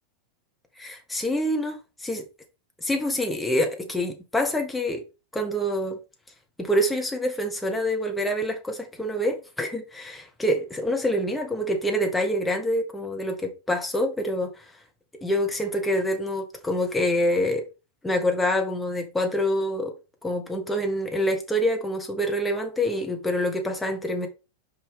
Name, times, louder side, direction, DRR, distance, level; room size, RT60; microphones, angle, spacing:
voice 1, 0.8-2.2 2.8-5.0 5.3-6.0 6.6-14.7 15.2-17.6 18.0-19.9 20.2-24.3, equal, 5° left, 1.4 m, -26 dB
5.7 x 4.8 x 3.5 m
figure-of-eight pair, 90°, 0 cm